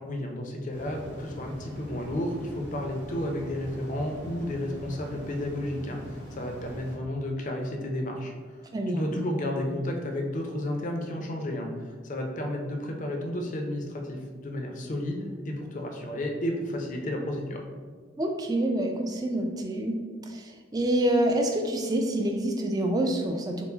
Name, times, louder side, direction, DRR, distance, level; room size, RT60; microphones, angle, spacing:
voice 1, 0.0-8.3 8.9-17.6, left 1 dB, 40° left, 2 dB, 0.5 m, -32 dB
sound 1, 0.7-6.9, equal, 75° right, 1.5 m, -43 dB
voice 2, 8.7-9.0 18.2-23.6, right 1 dB, 20° right, 3 dB, 0.3 m, -27 dB
4.5 x 2.0 x 3.8 m, 1.5 s
head